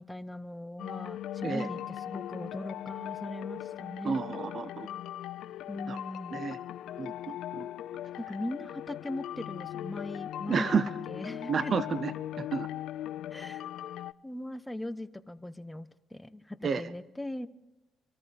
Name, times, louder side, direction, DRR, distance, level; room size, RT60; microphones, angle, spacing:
voice 1, 0.0-4.2 5.7-6.4 8.2-10.8 11.1-11.7 13.3-13.7 14.2-17.5, left 1 dB, 10° left, 11 dB, 0.9 m, -39 dB
sound 1, 0.8-14.1, left 12 dB, 80° left, 0.4 m, -39 dB
voice 2, 4.0-4.9 5.9-6.0 6.3-6.6 7.0-7.7 10.5-10.9 11.5-12.1 12.4-12.7 16.6-16.8, right 5 dB, 50° right, 14 dB, 0.7 m, -31 dB
25.5 x 13.5 x 3.4 m, 1.0 s
cardioid pair, 90°, 0 cm